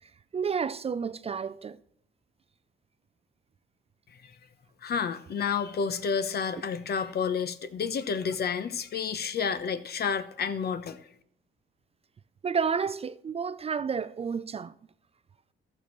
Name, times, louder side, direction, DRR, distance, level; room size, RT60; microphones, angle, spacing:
voice 1, 0.3-1.8 12.4-14.7, right 6 dB, 30° right, 0.4 m, -30 dB
voice 2, 4.8-11.1, left 6 dB, 55° left, 0.9 m, -30 dB
15.0 x 6.7 x 3.1 m
cardioid pair, 90°, 20 cm